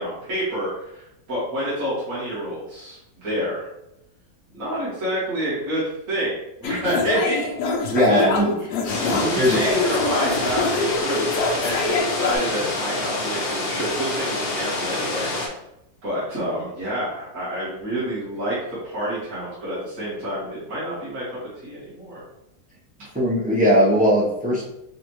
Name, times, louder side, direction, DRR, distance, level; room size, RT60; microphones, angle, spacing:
voice 1, 0.0-3.7 4.5-6.3 6.6-7.4 7.7-15.5 16.0-21.2 21.6-22.2, equal, 55° right, -11 dB, 1.9 m, -28 dB
sound 1, 6.6-12.4, left 3 dB, 70° left, 1.0 m, -25 dB
voice 2, 7.9-8.5 9.1-9.6 23.1-24.6, equal, 10° right, -7 dB, 0.5 m, -19 dB
sound 2, 8.9-15.5, left 2 dB, 50° left, 0.8 m, -27 dB
4.9 x 2.4 x 3.0 m, 0.85 s
omnidirectional pair, 1.8 m